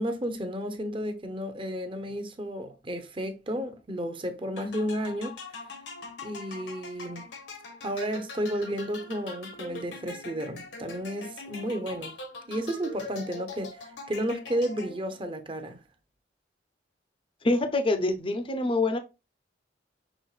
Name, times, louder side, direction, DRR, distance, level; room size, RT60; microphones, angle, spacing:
voice 1, 0.0-5.4 6.2-7.3 7.8-12.1 12.5-15.8, equal, 30° right, 0.7 m, -32 dB
sound 1, 4.6-15.2, left 3 dB, 75° left, 1.2 m, -43 dB
voice 2, 17.4-19.0, left 2 dB, 30° left, 0.6 m, -25 dB
6.3 x 3.6 x 2.4 m
head